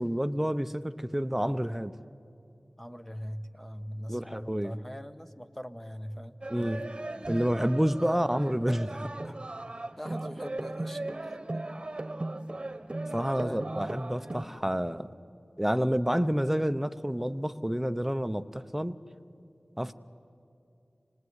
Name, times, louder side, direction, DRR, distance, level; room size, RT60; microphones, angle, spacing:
voice 1, 0.0-2.0 4.1-4.8 6.5-6.8 7.3-9.3 13.1-15.1 15.6-19.0 19.8-19.9, equal, 10° right, 12 dB, 0.8 m, -29 dB
voice 2, 2.8-6.4 8.1-8.2 10.0-11.6 13.4-13.9 19.9-20.0, equal, 10° left, 9 dB, 1.1 m, -41 dB
sound 1, 6.4-14.4, right 2 dB, 40° right, 1.2 m, -37 dB
26.0 x 19.5 x 9.6 m, 2.6 s
wide cardioid pair, 55°, 2 cm